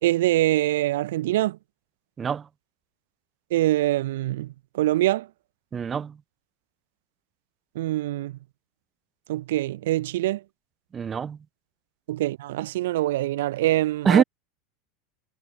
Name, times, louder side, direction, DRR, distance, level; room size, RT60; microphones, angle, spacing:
voice 1, 0.0-1.6 3.5-5.3 7.8-8.3 9.3-10.4 12.1-14.2, right 15 dB, 65° right, 0.6 m, -24 dB
voice 2, 5.7-6.2 10.9-11.4 14.0-14.2, right 7 dB, 25° right, 0.9 m, -23 dB
figure-of-eight pair, 80°, 0 cm